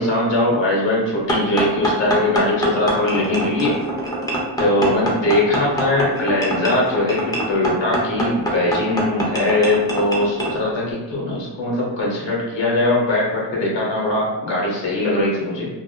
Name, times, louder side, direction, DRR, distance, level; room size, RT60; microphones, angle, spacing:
voice 1, 0.0-3.8 4.6-7.2 7.5-15.7, left 1 dB, 70° left, -4 dB, 1.0 m, -20 dB
sound 1, 1.3-10.5, right 1 dB, 10° left, 0.4 m, -24 dB
3.3 x 2.1 x 2.3 m, 1.1 s
wide cardioid pair, 135°, 46 cm